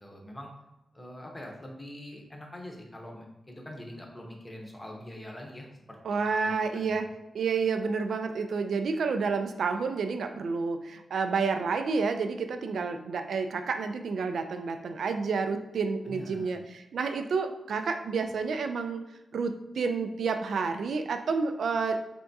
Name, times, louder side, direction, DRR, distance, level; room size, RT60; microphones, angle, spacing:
voice 1, 0.0-0.5 0.9-7.1 16.0-16.6, left 1 dB, 15° left, 0 dB, 0.7 m, -44 dB
voice 2, 6.0-7.1 7.3-19.0 19.3-22.0, right 5 dB, 75° right, 7 dB, 0.3 m, -30 dB
4.6 x 3.4 x 2.6 m, 0.95 s
wide cardioid pair, 165°, 0 cm